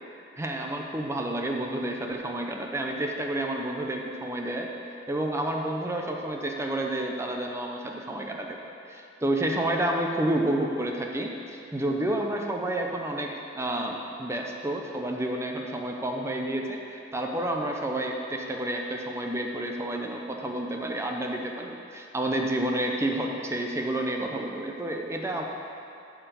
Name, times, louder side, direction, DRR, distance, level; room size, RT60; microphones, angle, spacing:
voice 1, 0.4-4.7 5.1-25.4, right 1 dB, 15° right, 1 dB, 0.6 m, -30 dB
8.8 x 4.7 x 7.0 m, 2.6 s
head